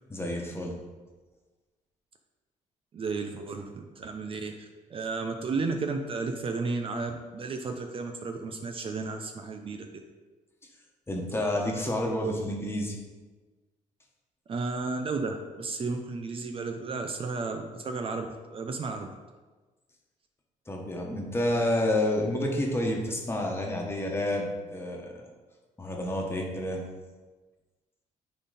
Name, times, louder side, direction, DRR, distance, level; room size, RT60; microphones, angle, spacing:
voice 1, 0.1-0.8 11.1-12.9 20.7-25.1 25.8-26.8, left 1 dB, 15° left, 0 dB, 1.4 m, -29 dB
voice 2, 2.9-9.9 14.5-19.1, right 4 dB, 40° right, 5 dB, 0.6 m, -33 dB
9.8 x 4.0 x 4.1 m, 1.3 s
cardioid pair, 120°, 14 cm